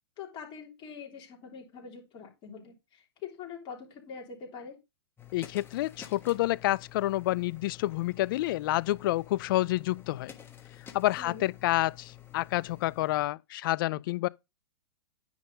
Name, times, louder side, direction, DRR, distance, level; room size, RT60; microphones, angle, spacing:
voice 1, 0.2-4.7 11.2-11.5, left 6 dB, 35° left, 3.2 m, -44 dB
sound 1, 5.2-13.3, left 10 dB, 15° left, 1.3 m, -50 dB
voice 2, 5.3-10.3 10.9-14.3, left 16 dB, 50° left, 0.4 m, -29 dB
9.5 x 3.7 x 5.2 m
hypercardioid pair, 120°, 14 cm